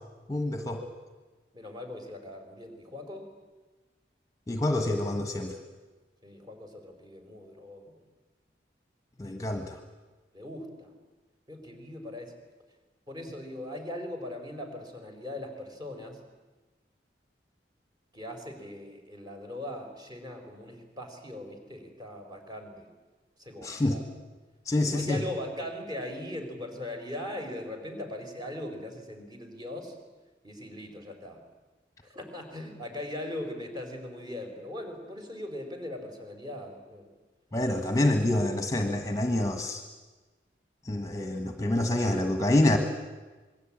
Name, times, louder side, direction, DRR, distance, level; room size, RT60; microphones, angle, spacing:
voice 1, 0.3-0.8 4.5-5.5 9.2-9.8 23.6-24.0 24.6-25.2 37.5-39.8 40.8-42.8, left 1 dB, 20° left, 5 dB, 1.4 m, -27 dB
voice 2, 1.5-3.3 6.2-8.0 9.3-9.4 10.3-10.9 11.5-12.4 13.1-16.2 18.1-22.9 23.4-24.0 24.8-30.0 30.4-31.4 32.0-37.1, left 1 dB, 25° right, 3 dB, 4.4 m, -40 dB
27.0 x 21.5 x 8.7 m, 1.3 s
head